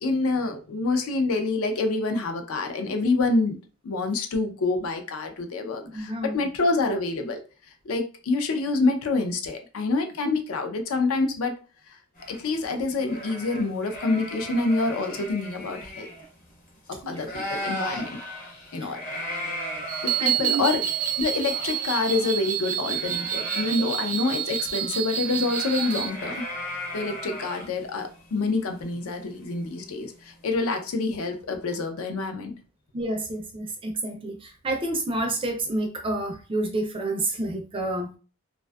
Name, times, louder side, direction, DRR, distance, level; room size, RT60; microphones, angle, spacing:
voice 1, 0.0-3.6 3.8-7.4 7.8-11.5 12.3-16.1 16.9-18.2 18.7-19.3 20.0-20.8 21.2-26.4 26.9-32.5, left 3 dB, 75° left, 5 dB, 0.4 m, -27 dB
voice 2, 5.8-6.5 17.0-17.3 18.8-19.0 20.2-20.6 23.8-23.9 32.9-38.2, right 2 dB, 25° right, 3 dB, 0.3 m, -29 dB
sound 1, 12.2-16.9 17.1-30.1, equal, 35° left, 0.7 m, -37 dB
sound 2, 19.9-26.1, right 10 dB, 90° right, 0.4 m, -28 dB
2.5 x 2.2 x 2.2 m, 0.35 s
head